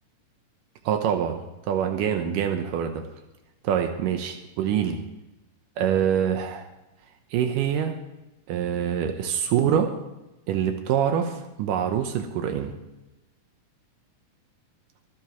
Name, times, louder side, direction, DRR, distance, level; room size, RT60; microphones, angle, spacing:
voice 1, 0.9-3.0 3.6-5.0 5.8-6.7 7.3-7.9 8.5-9.9 10.5-12.7, right 9 dB, 85° right, 5 dB, 2.5 m, -25 dB
25.0 x 10.5 x 3.1 m, 1.0 s
omnidirectional pair, 3.7 m